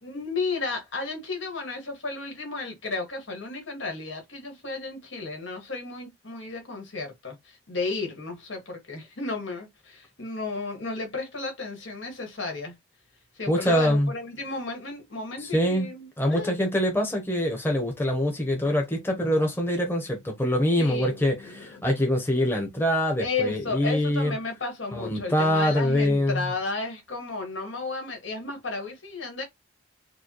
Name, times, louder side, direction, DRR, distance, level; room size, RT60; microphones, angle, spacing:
voice 1, 0.0-12.7 13.3-16.6 20.8-21.8 23.2-29.4, left 3 dB, 85° left, 1.7 m, -33 dB
voice 2, 13.5-14.1 15.4-15.9 16.2-24.3 24.9-26.5, equal, 10° left, 0.8 m, -24 dB
4.7 x 2.2 x 2.9 m
head